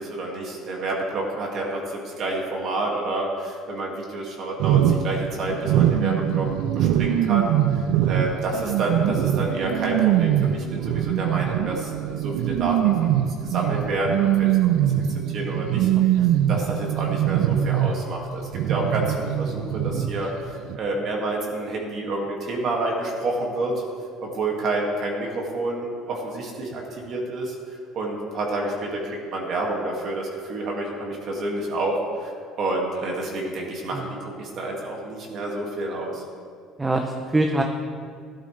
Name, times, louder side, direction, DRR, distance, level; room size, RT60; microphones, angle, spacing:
voice 1, 0.0-14.7 15.3-23.8 24.2-27.5 27.9-36.2, right 2 dB, 45° right, -1 dB, 2.1 m, -29 dB
sound 1, 4.6-18.2 18.5-20.4 20.7-20.8, right 11 dB, 70° right, 0.5 m, -22 dB
voice 2, 15.9-16.4 19.9-20.1 33.9-34.1 36.8-37.6, right 2 dB, 10° right, 3 dB, 0.6 m, -26 dB
16.5 x 11.5 x 3.3 m, 2.3 s
cardioid pair, 165°, 0 cm